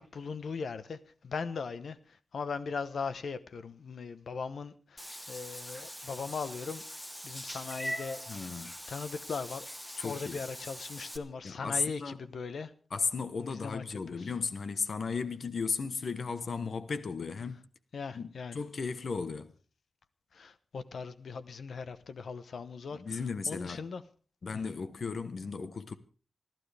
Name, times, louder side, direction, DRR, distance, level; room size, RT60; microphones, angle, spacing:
voice 1, 0.0-6.8 7.2-8.5 8.9-9.7 10.0-12.7 13.4-14.3 17.9-18.6 20.3-23.2 23.5-24.0 24.5-24.6, left 5 dB, 85° left, 1.1 m, -39 dB
Meow / Water / Bathtub (filling or washing), 5.0-11.2, equal, 5° left, 1.2 m, -42 dB
voice 2, 8.3-8.7 10.0-10.4 11.4-12.3 12.9-17.7 18.1-19.5 22.9-23.9 24.4-26.0, left 5 dB, 65° left, 1.0 m, -35 dB
28.5 x 12.0 x 3.5 m
wide cardioid pair, 140°, 0 cm